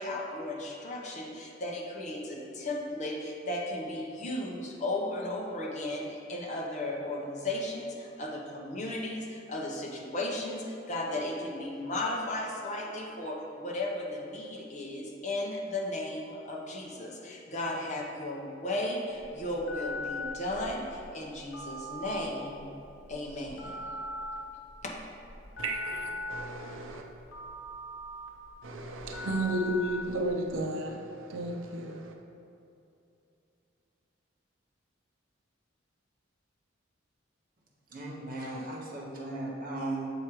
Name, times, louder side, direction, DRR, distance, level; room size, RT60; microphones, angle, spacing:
voice 1, 0.0-22.7 23.1-23.9 24.8-24.9, left 1 dB, 35° left, -2 dB, 0.9 m, -35 dB
Telephone, 19.1-30.6, left 2 dB, 75° left, 1.1 m, -41 dB
voice 2, 25.6-27.0 28.6-32.1, right 1 dB, 85° right, 1 dB, 0.5 m, -33 dB
voice 3, 37.9-40.1, right 2 dB, 45° right, -3 dB, 0.8 m, -36 dB
7.2 x 4.8 x 3.1 m, 2.7 s
head